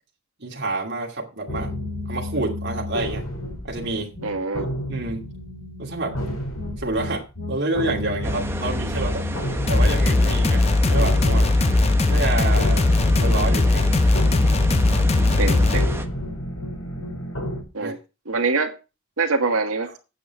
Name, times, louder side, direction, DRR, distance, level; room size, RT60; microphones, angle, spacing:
voice 1, 0.4-1.7 2.1-3.3 3.6-4.3 4.9-5.3 5.8-6.2 6.8-9.3 9.7-11.5 12.1-12.9 13.1-13.9 15.2-15.5 17.8-17.9, right 2 dB, 50° right, 2.6 m, -28 dB
sound 1, 1.5-17.6, left 1 dB, 85° left, 5.0 m, -31 dB
voice 2, 4.2-4.6 15.4-15.9 17.7-18.0 18.3-18.7 19.2-19.9, right 4 dB, 80° right, 1.9 m, -24 dB
sound 2, 8.2-16.1, right 1 dB, 10° right, 1.0 m, -29 dB
sound 3, 9.7-15.9, left 2 dB, 30° left, 0.5 m, -19 dB
9.1 x 8.5 x 5.9 m
head